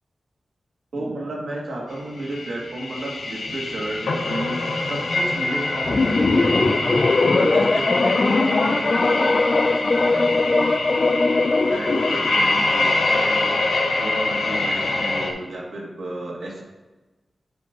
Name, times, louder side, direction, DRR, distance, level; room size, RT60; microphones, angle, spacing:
voice 1, 0.9-6.8 7.3-9.4 9.8-10.6 11.7-13.6 14.0-16.6, right 1 dB, 85° right, -3 dB, 2.2 m, -33 dB
sound 1, 2.2-15.3, left 2 dB, 80° left, 0.9 m, -24 dB
sound 2, 5.8-12.3, left 3 dB, 40° left, 0.4 m, -20 dB
9.0 x 5.2 x 2.9 m, 1.1 s
wide cardioid pair, 130°, 0 cm